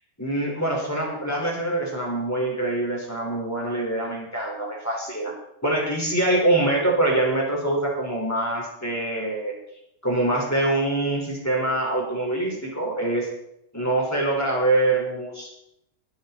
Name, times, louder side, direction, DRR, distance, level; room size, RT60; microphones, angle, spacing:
voice 1, 0.2-5.3 5.6-9.5 10.0-13.3 13.7-15.5, right 2 dB, 5° left, -3 dB, 4.6 m, -24 dB
21.5 x 10.0 x 4.4 m, 0.77 s
omnidirectional pair, 4.0 m